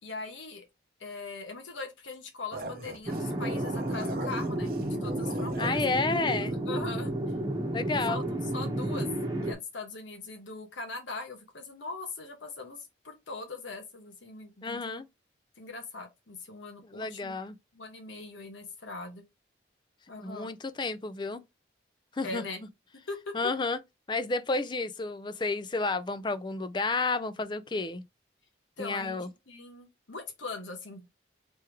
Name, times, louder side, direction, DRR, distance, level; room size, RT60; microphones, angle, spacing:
voice 1, 0.0-0.7 1.0-4.7 5.0-5.8 6.4-7.1 7.9-9.1 9.4-15.0 15.6-17.3 17.7-19.2 20.1-20.5 22.2-22.6 23.1-23.5 28.8-29.2 29.5-31.1, left 3 dB, 85° left, 1.2 m, -41 dB
sound 1, 2.5-5.9, right 2 dB, 50° right, 0.7 m, -40 dB
sound 2, 3.1-9.5, right 1 dB, 20° right, 1.1 m, -31 dB
voice 2, 5.6-6.5 7.7-8.2 14.6-15.1 16.8-17.6 20.2-21.4 22.1-22.4 23.3-23.8 24.1-28.0 28.8-29.3, left 3 dB, 25° left, 0.4 m, -31 dB
3.5 x 3.4 x 4.5 m
head